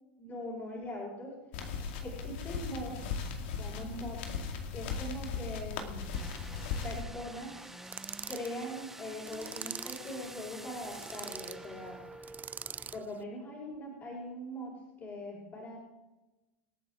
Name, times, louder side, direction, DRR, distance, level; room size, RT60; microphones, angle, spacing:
voice 1, 0.2-1.3 2.0-3.0 3.6-4.2 4.7-6.1 6.8-7.7 8.3-12.0 12.9-15.8, equal, 30° left, -3 dB, 5.6 m, -41 dB
sound 1, 1.5-7.0, left 5 dB, 70° left, 2.3 m, -37 dB
sound 2, 6.1-13.0, right 2 dB, 5° right, 1.1 m, -48 dB
sound 3, 7.8-8.5 9.3-10.1 10.8-11.6 12.2-13.0, right 8 dB, 25° right, 0.5 m, -43 dB
26.5 x 9.2 x 3.8 m, 1.0 s
hypercardioid pair, 95°, 6 cm